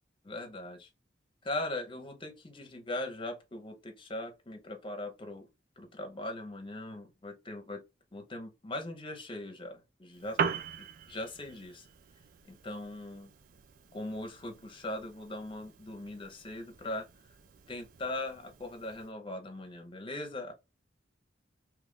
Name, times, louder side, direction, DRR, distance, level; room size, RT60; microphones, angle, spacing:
voice 1, 0.2-0.9 1.4-5.5 5.8-7.8 8.1-11.8 12.5-13.3 13.9-17.1 17.7-20.5, left 1 dB, 25° left, 0.8 m, -40 dB
Piano, 10.1-19.1, right 6 dB, 50° right, 0.4 m, -41 dB
2.9 x 2.5 x 3.5 m
head